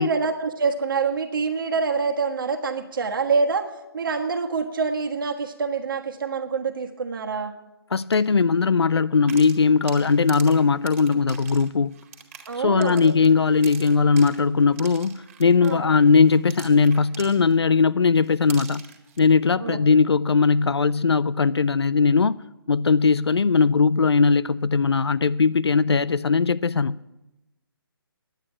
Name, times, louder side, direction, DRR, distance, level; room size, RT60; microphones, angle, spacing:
voice 1, 0.0-3.7 3.9-7.5 12.5-13.1 15.6-15.9 19.6-19.8, right 4 dB, 55° right, 1.4 m, -26 dB
voice 2, 7.9-11.9 12.6-18.8 19.2-22.4 22.7-27.0, left 5 dB, 85° left, 0.4 m, -19 dB
sound 1, 8.0-8.2 9.2-17.8 18.2-19.2, right 7 dB, 30° right, 1.9 m, -44 dB
10.5 x 8.9 x 8.7 m
figure-of-eight pair, 150°, 13 cm